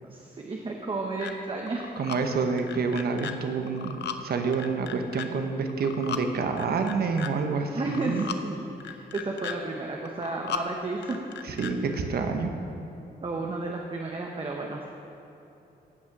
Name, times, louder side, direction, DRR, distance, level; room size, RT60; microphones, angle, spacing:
voice 1, 0.0-1.9 7.7-8.7 9.1-11.3 13.2-14.9, right 3 dB, 30° right, 0 dB, 1.0 m, -32 dB
sound 1, 1.2-1.3 1.7-2.2 2.6-3.3 3.7-4.2 4.5-5.3 5.7-6.2 6.6-7.3 7.8-8.4 8.8-9.6 10.1-10.6 11.0-11.7, left 8 dB, 90° left, 0.6 m, -36 dB
voice 2, 2.0-4.0 4.2-8.2 11.4-12.5, right 4 dB, 70° right, 5 dB, 1.1 m, -28 dB
16.0 x 6.3 x 6.0 m, 2.9 s
wide cardioid pair, 130°, 17 cm